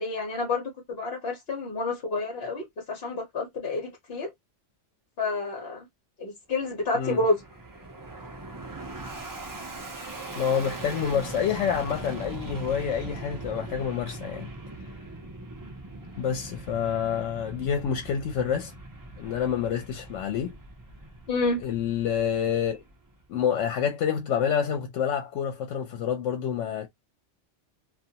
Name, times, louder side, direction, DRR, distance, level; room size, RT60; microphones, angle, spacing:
voice 1, 0.0-4.3 5.2-5.9 6.2-7.4 21.3-21.6, left 3 dB, 60° left, 1.1 m, -29 dB
Fixed-wing aircraft airplane, 6.6-23.3, right 2 dB, 35° right, 0.3 m, -41 dB
voice 2, 10.4-14.5 16.2-18.7 19.2-20.5 21.6-22.8 23.3-26.9, left 8 dB, 85° left, 0.9 m, -28 dB
2.4 x 2.3 x 2.7 m
omnidirectional pair, 1.2 m